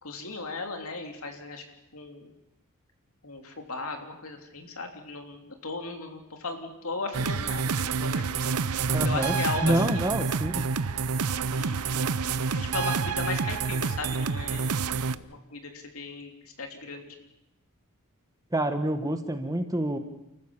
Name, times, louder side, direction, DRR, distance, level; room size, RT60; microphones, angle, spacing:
voice 1, 0.0-1.6 1.9-2.3 3.2-8.5 8.9-10.1 11.5-17.1, left 3 dB, 70° left, 4 dB, 3.3 m, -37 dB
sound 1, 7.1-15.2, right 5 dB, 85° right, 0.7 m, -28 dB
voice 2, 8.9-9.3 9.6-10.6 18.5-20.0, right 1 dB, 15° right, 8 dB, 1.4 m, -27 dB
30.0 x 14.5 x 7.3 m, 0.87 s
head